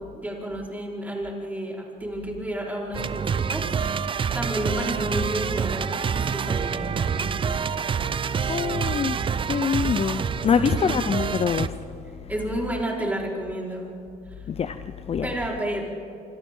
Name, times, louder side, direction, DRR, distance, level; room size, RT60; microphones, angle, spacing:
voice 1, 0.0-3.7 4.3-7.6 10.5-10.9 12.3-13.9 14.4-14.5 15.2-15.8, right 1 dB, 10° right, -3 dB, 4.8 m, -31 dB
sound 1, 2.9-11.7, right 6 dB, 30° right, 0.6 m, -27 dB
voice 2, 8.5-9.2 9.5-11.7 14.5-14.8 15.1-15.3, left 7 dB, 35° left, 10 dB, 0.7 m, -24 dB
26.0 x 25.5 x 3.9 m, 2.6 s
cardioid pair, 110°, 17 cm